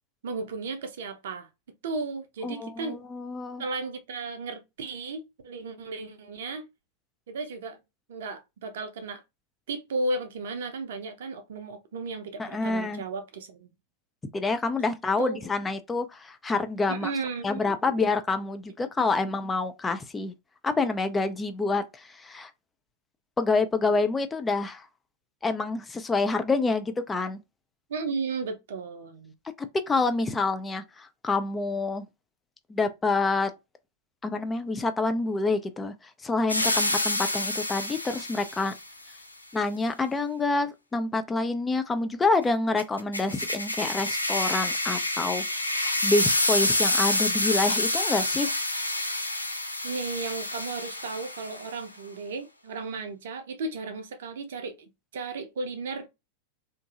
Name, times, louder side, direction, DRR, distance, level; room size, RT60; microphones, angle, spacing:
voice 1, 0.2-1.5 1.8-3.0 3.6-6.7 7.3-7.8 8.1-9.2 9.7-13.7 15.2-15.4 16.9-17.7 27.9-29.3 49.8-56.1, right 3 dB, 60° right, 0.6 m, -34 dB
voice 2, 2.4-3.6 12.4-13.0 14.3-17.1 17.4-20.3 20.6-22.5 23.4-24.9 25.4-27.4 29.6-32.1 32.7-33.5 34.2-35.9 36.2-38.7 39.5-48.5, left 3 dB, 15° left, 0.3 m, -27 dB
sound 1, 36.5-38.8 42.8-51.7, left 1 dB, 85° left, 0.4 m, -28 dB
2.6 x 2.5 x 2.4 m
figure-of-eight pair, 90°, 0 cm